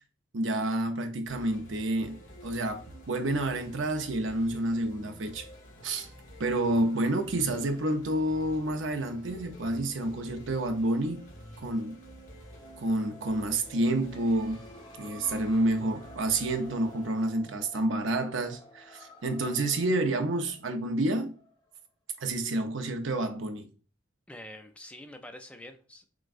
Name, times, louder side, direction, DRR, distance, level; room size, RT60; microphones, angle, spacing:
voice 1, 0.3-5.5 5.8-6.1 6.4-11.2 11.6-12.0 12.8-14.6 15.0-21.3 22.2-23.7, right 1 dB, 75° right, 0.6 m, -29 dB
sound 1, 1.3-17.3, equal, 75° left, 1.5 m, -50 dB
sound 2, 12.3-21.8, equal, 25° left, 0.8 m, -52 dB
voice 2, 24.3-26.1, left 1 dB, 5° left, 0.4 m, -46 dB
6.1 x 2.2 x 2.5 m
head